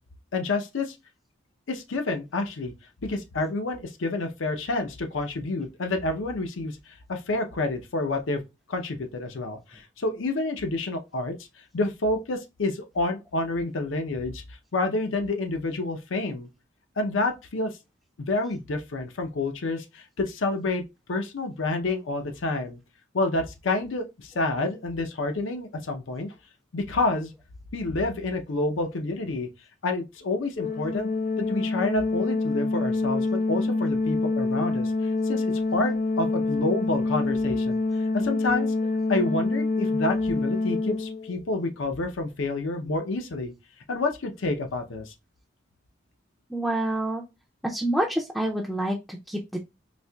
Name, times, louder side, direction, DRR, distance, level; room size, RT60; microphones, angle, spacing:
voice 1, 0.3-1.0 1.7-2.7 3.0-6.8 7.1-8.4 8.7-11.4 11.7-14.4 14.7-16.5 17.0-17.7 18.2-20.8 21.1-22.8 23.1-26.3 26.7-27.3 27.7-29.5 29.8-31.1 31.4-34.9 35.2-37.8 38.1-38.7 39.1-43.5 43.9-45.1, left 2 dB, 90° left, 0.6 m, -28 dB
Organ, 30.6-41.4, left 3 dB, 45° left, 0.6 m, -26 dB
voice 2, 46.5-47.2 47.6-49.6, right 1 dB, ahead, 0.3 m, -27 dB
4.1 x 2.8 x 2.2 m
head